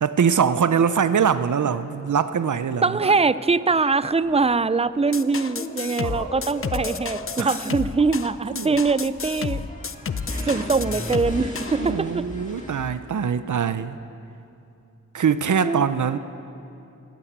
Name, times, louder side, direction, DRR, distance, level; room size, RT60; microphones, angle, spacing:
voice 1, 0.0-3.1 6.0-6.3 7.4-7.5 8.5-8.7 10.3-10.6 11.8-14.0 15.1-16.2, right 7 dB, 75° right, 12 dB, 0.6 m, -23 dB
voice 2, 2.8-9.6 10.5-12.3 15.6-15.9, right 4 dB, 20° right, 16 dB, 0.4 m, -22 dB
sound 1, 4.1-12.9, left 1 dB, 25° left, 1.8 m, -37 dB
sound 2, 5.1-11.8, left 6 dB, 45° left, 0.5 m, -31 dB
17.5 x 8.9 x 8.1 m, 2.8 s
wide cardioid pair, 85°, 30 cm